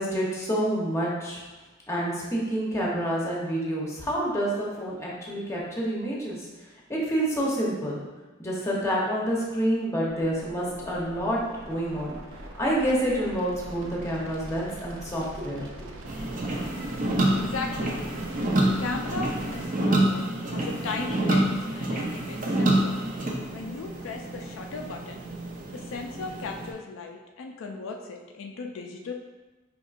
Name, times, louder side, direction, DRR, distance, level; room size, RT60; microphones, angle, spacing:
voice 1, 0.0-1.4 1.9-6.4 6.9-8.0 8.4-11.4 11.7-12.1 12.6-15.9, equal, 15° left, -4 dB, 0.8 m, -28 dB
sound 1, 10.1-19.6, right 1 dB, 85° right, 0.5 m, -42 dB
sound 2, 16.1-26.7, right 1 dB, 40° right, 0.6 m, -28 dB
voice 2, 17.3-18.0 18.6-22.9 23.5-25.3 25.7-29.1, left 4 dB, 75° left, 3 dB, 0.4 m, -37 dB
5.0 x 3.0 x 2.4 m, 1.2 s
head